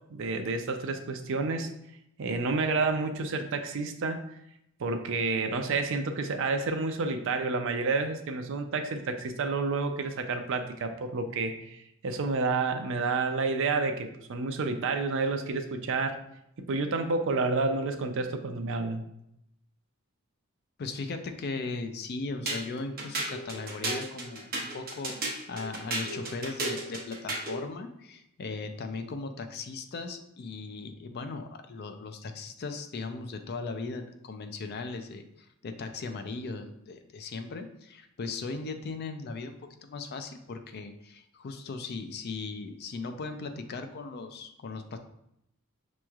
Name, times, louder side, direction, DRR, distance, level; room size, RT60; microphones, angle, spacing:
voice 1, 0.1-1.7 2.2-4.2 4.8-16.2 16.7-19.0, right 3 dB, 60° right, 7 dB, 0.5 m, -29 dB
voice 2, 20.8-45.0, left 3 dB, 45° left, 7 dB, 0.4 m, -38 dB
sound 1, 22.5-27.6, right 2 dB, 45° right, 0.9 m, -34 dB
6.1 x 3.0 x 2.3 m, 0.79 s
head